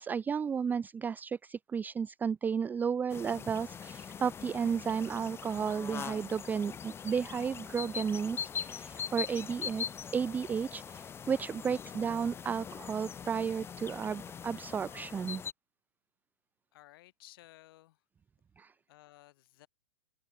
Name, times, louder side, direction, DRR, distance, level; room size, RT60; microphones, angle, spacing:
voice 1, 0.0-9.8 10.1-15.4 18.6-18.7, right 6 dB, 10° right, 0.6 m, -33 dB
sound 1, 3.1-15.5, left 7 dB, 15° left, 1.4 m, -42 dB
voice 2, 16.7-18.0 18.9-19.7, left 17 dB, 50° left, 7.1 m, -57 dB
open air
figure-of-eight pair, 110°, 16 cm